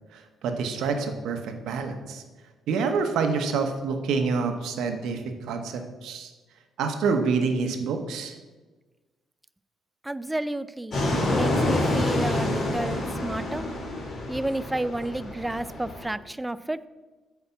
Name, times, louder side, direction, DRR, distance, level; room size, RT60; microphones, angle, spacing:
voice 1, 0.1-2.2 2.7-6.3 6.8-8.4, right 5 dB, 80° right, 6 dB, 1.0 m, -27 dB
voice 2, 10.0-13.7 14.3-16.8, right 1 dB, 10° right, 15 dB, 0.3 m, -31 dB
Fixed-wing aircraft airplane, 10.9-16.1, left 1 dB, 55° left, 2.5 m, -27 dB
8.3 x 4.3 x 7.0 m, 1.3 s
cardioid pair, 90°, 0 cm